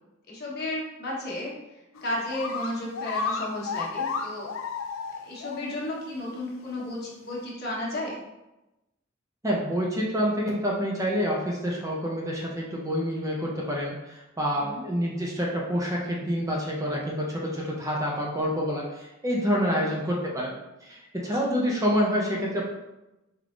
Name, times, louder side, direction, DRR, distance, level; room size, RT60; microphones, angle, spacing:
voice 1, 0.3-1.5 2.0-4.5 5.3-8.2 14.6-14.8 19.7-19.9, left 1 dB, 55° left, -5 dB, 1.2 m, -33 dB
sound 1, 2.0-2.1 2.3-5.6 5.9-6.0 6.8-6.9, left 5 dB, 85° left, 0.4 m, -32 dB
voice 2, 9.4-20.5 20.8-22.6, equal, 15° right, -3 dB, 0.6 m, -27 dB
4.4 x 3.5 x 2.5 m, 0.98 s
head